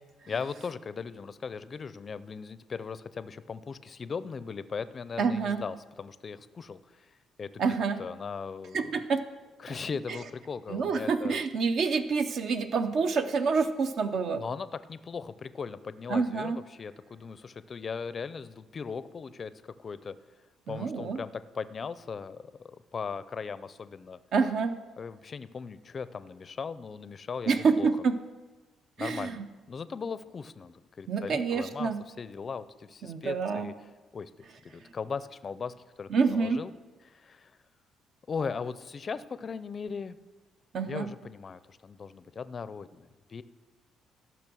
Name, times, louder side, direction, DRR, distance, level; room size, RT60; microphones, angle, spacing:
voice 1, 0.3-6.8 7.4-7.5 8.0-8.8 9.6-11.4 14.4-20.1 20.7-22.4 22.9-24.2 25.0-27.9 29.0-33.7 34.1-34.3 34.6-36.7 37.1-37.5 38.3-40.1 40.8-43.4, left 5 dB, 35° left, 14 dB, 0.5 m, -38 dB
voice 2, 5.2-5.6 7.6-8.0 8.7-9.2 10.7-14.4 16.1-16.6 20.7-21.2 24.3-24.8 27.5-28.1 29.0-29.5 31.1-32.0 33.0-33.7 36.1-36.6 40.7-41.1, right 5 dB, 60° right, 8 dB, 0.6 m, -27 dB
14.0 x 6.1 x 6.2 m, 1.2 s
cardioid pair, 125°, 0 cm